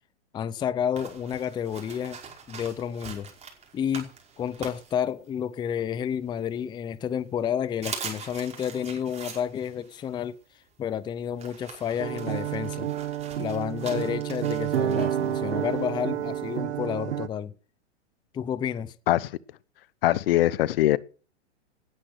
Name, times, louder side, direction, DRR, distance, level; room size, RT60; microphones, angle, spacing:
voice 1, 0.3-2.2 2.5-3.3 3.7-10.4 10.8-12.9 13.4-17.5 18.3-18.9, left 8 dB, 15° left, 0.6 m, -30 dB
sound 1, 0.9-5.6 6.0-7.0 7.4-7.5 7.7-16.5, right 6 dB, 20° right, 5.2 m, -43 dB
sound 2, 12.0-17.3, right 11 dB, 70° right, 1.2 m, -29 dB
voice 2, 20.0-21.0, left 15 dB, 55° left, 0.9 m, -22 dB
18.5 x 10.0 x 6.3 m
hypercardioid pair, 125°, 35 cm